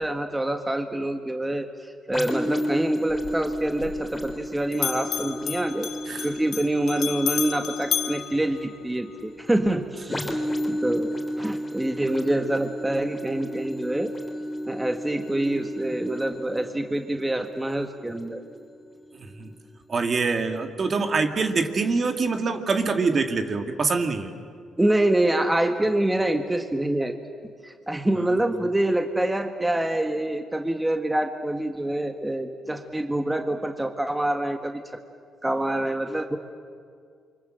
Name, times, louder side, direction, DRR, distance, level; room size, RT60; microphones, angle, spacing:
voice 1, 0.0-1.7 2.1-5.9 6.2-14.1 14.7-18.4 24.8-27.1 27.6-34.8 35.4-36.4, right 1 dB, 10° right, 5 dB, 1.6 m, -26 dB
sound 1, 2.1-19.7 20.2-20.3, equal, 15° left, 3.5 m, -33 dB
Bell, 3.1-4.5 4.7-9.2, left 9 dB, 70° left, 1.0 m, -32 dB
voice 2, 19.1-19.5 19.9-24.3 28.1-28.4, right 4 dB, 45° right, 6 dB, 2.1 m, -25 dB
28.0 x 24.5 x 7.7 m, 2.1 s
cardioid pair, 90°, 0 cm